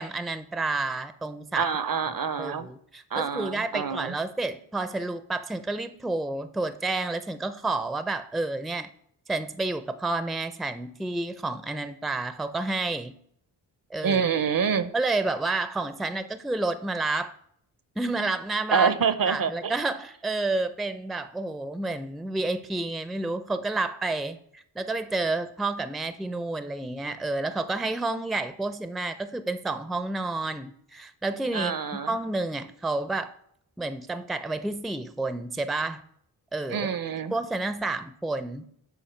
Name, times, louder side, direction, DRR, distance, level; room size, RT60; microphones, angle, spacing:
voice 1, 0.0-1.7 2.4-8.9 9.3-13.1 13.9-14.2 14.9-17.3 18.0-18.9 19.3-31.7 32.1-33.3 33.8-36.0 36.5-36.9 37.3-38.6, right 2 dB, ahead, 11 dB, 0.5 m, -30 dB
voice 2, 1.6-2.7 3.1-4.1 14.0-14.9 18.7-19.7 31.5-32.1 36.7-37.3, right 6 dB, 45° right, 13 dB, 0.7 m, -26 dB
7.2 x 4.5 x 4.5 m, 0.69 s
supercardioid pair, 45°, 47 cm